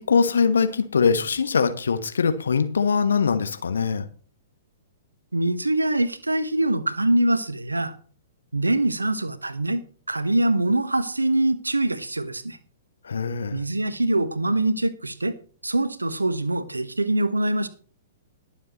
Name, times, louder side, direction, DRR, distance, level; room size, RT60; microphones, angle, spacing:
voice 1, 0.0-4.1 13.0-13.6, left 5 dB, 65° left, 1.3 m, -22 dB
voice 2, 5.3-7.9 8.5-9.8 10.1-12.6 13.5-15.3 15.6-17.7, right 1 dB, 80° right, 1.1 m, -23 dB
21.5 x 7.2 x 3.0 m
figure-of-eight pair, 110°, 0 cm